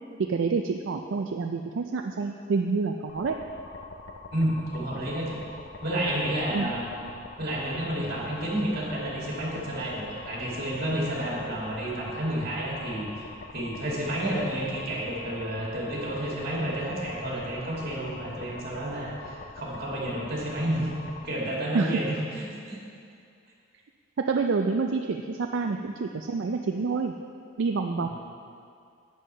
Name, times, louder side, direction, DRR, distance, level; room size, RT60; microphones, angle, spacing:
voice 1, 0.2-3.4 6.5-6.7 21.7-22.0 24.2-27.1 27.6-28.1, right 4 dB, 70° right, 4 dB, 0.4 m, -27 dB
sound 1, 3.1-21.3, left 3 dB, 70° left, 0.7 m, -44 dB
voice 2, 4.3-5.4 5.8-6.9 7.4-20.9 21.2-22.8 28.0-28.1, right 1 dB, 55° right, -5 dB, 2.6 m, -30 dB
11.0 x 9.0 x 3.3 m, 2.3 s
head